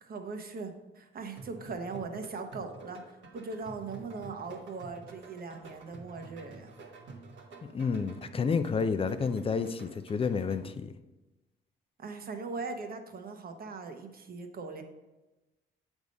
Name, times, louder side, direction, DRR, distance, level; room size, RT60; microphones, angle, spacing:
voice 1, 0.0-6.7 12.0-14.8, right 4 dB, 50° right, 5 dB, 1.0 m, -40 dB
sound 1, 1.4-10.9, right 3 dB, 70° right, 1.3 m, -49 dB
voice 2, 7.7-10.9, left 5 dB, 30° left, 11 dB, 0.5 m, -30 dB
8.1 x 3.6 x 5.1 m, 1.1 s
cardioid pair, 90°, 20 cm